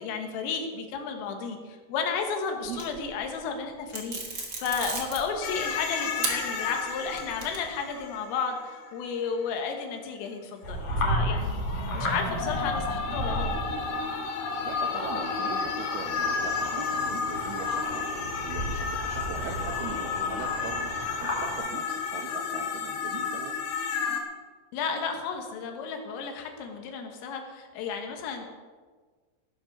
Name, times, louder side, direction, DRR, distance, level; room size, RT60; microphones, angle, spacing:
voice 1, 0.0-11.6 11.9-13.6 24.7-28.5, left 5 dB, 90° left, 4 dB, 4.2 m, -33 dB
sound 1, 2.6-3.2 3.9-5.7 6.2-6.3 6.8-7.8, right 3 dB, 40° right, 1.4 m, -34 dB
sound 2, 5.4-9.1 11.4-24.2, left 5 dB, 70° left, 3.9 m, -32 dB
sound 3, 10.6-21.6, equal, 35° left, 3.6 m, -34 dB
voice 2, 14.6-18.1 18.4-23.6, right 6 dB, 75° right, 1 dB, 2.4 m, -40 dB
17.5 x 7.4 x 6.7 m, 1.5 s
omnidirectional pair, 5.8 m